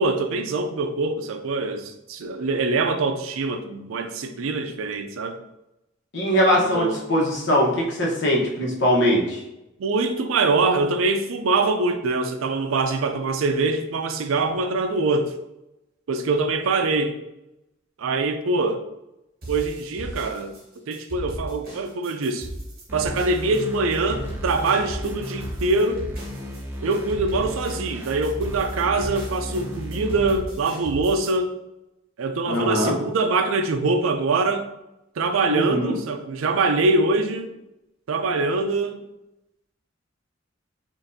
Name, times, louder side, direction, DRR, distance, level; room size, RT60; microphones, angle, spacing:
voice 1, 0.0-5.4 6.7-7.0 9.8-15.3 16.1-17.1 18.0-18.8 19.5-20.5 20.9-22.5 22.9-26.0 26.8-31.5 32.2-34.7 35.2-37.5 38.1-39.0, right 3 dB, 90° right, 8 dB, 0.4 m, -23 dB
voice 2, 6.1-9.4 32.5-33.0 35.5-36.0, equal, 60° left, -2 dB, 1.0 m, -21 dB
sound 1, 19.4-31.3, right 1 dB, 50° right, 1.4 m, -37 dB
sound 2, 22.9-30.4, left 1 dB, 10° right, 0.6 m, -34 dB
5.5 x 2.6 x 2.6 m, 0.90 s
head